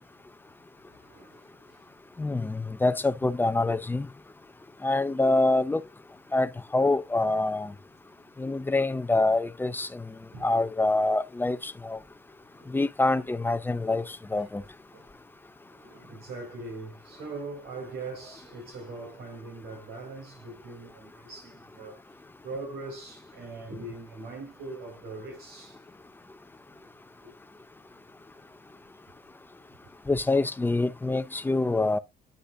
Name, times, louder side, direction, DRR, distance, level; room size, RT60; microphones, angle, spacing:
voice 1, 0.9-1.8 7.5-7.6 10.3-10.5 12.6-12.8 14.9-15.1 15.7-22.0 22.4-25.8, right 3 dB, 70° right, 5.4 m, -41 dB
voice 2, 2.2-4.1 4.8-5.8 6.3-7.7 8.4-10.1 10.4-12.0 12.7-14.6 30.1-32.0, left 2 dB, 10° left, 0.6 m, -26 dB
9.8 x 6.4 x 2.7 m
cardioid pair, 110°, 17 cm